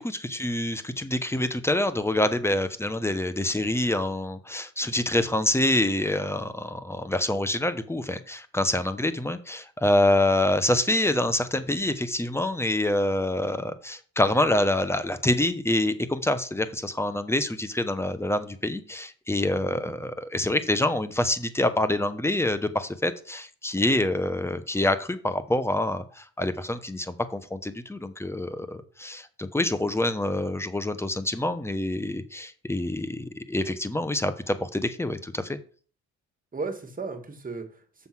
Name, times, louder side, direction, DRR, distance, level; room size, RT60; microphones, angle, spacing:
voice 1, 0.0-35.6, left 1 dB, 10° left, 12 dB, 1.0 m, -26 dB
voice 2, 19.6-20.0 36.5-38.1, right 4 dB, 30° right, 5 dB, 2.1 m, -36 dB
6.9 x 5.9 x 6.1 m, 0.41 s
cardioid pair, 90°, 30 cm